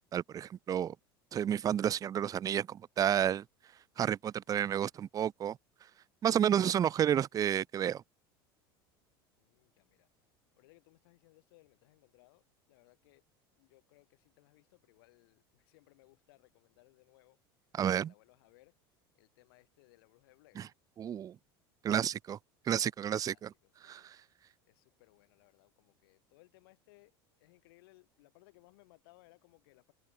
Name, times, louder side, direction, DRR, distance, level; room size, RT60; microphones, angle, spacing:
voice 1, 0.1-0.9 1.3-3.4 4.0-5.6 6.2-8.0 17.8-18.1 20.6-20.7 21.0-21.4 21.8-22.4 22.7-23.5 23.8-24.2, right 9 dB, 30° right, 0.4 m, -31 dB
voice 2, 9.4-10.1 10.5-13.2 13.6-17.4 17.9-18.7 19.1-20.6 23.3-24.1 24.7-29.9, left 22 dB, 75° left, 5.0 m, -65 dB
hypercardioid pair, 90°, 12 cm